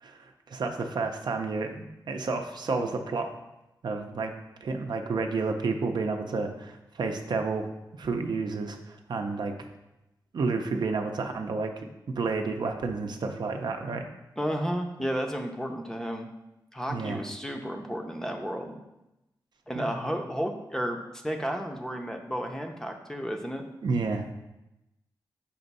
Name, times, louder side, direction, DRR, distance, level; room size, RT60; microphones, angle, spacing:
voice 1, 0.0-3.3 3.8-4.3 4.6-7.7 7.9-9.5 10.3-11.7 12.1-14.0 16.9-17.2 19.8-19.9 23.8-24.3, right 4 dB, 65° right, 4 dB, 0.6 m, -30 dB
voice 2, 14.4-16.3 16.7-18.8 19.7-23.6, equal, 5° left, 3 dB, 0.5 m, -32 dB
6.9 x 2.6 x 5.3 m, 0.93 s
wide cardioid pair, 120°, 8 cm